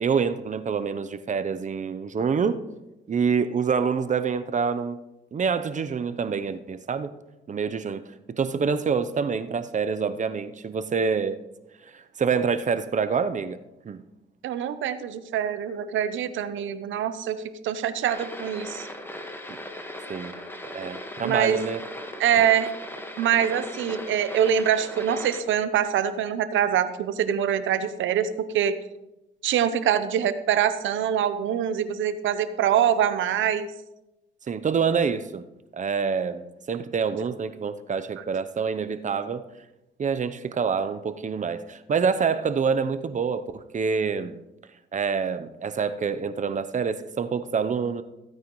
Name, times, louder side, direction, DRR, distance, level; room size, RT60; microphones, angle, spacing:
voice 1, 0.0-2.6 3.1-5.0 5.3-7.1 7.5-11.4 11.9-13.6 13.8-14.0 19.5-19.6 20.1-20.3 20.7-21.8 34.5-35.4 35.7-39.4 40.0-44.4 44.9-48.0, right 6 dB, 40° right, 11 dB, 0.7 m, -26 dB
voice 2, 14.4-18.9 21.2-21.6 22.2-22.7 23.2-28.3 28.5-28.8 29.4-33.7, right 9 dB, 75° right, 12 dB, 0.8 m, -24 dB
sound 1, 18.1-25.4, left 1 dB, 10° left, 1.5 m, -38 dB
15.5 x 9.2 x 3.1 m, 0.95 s
cardioid pair, 90°, 20 cm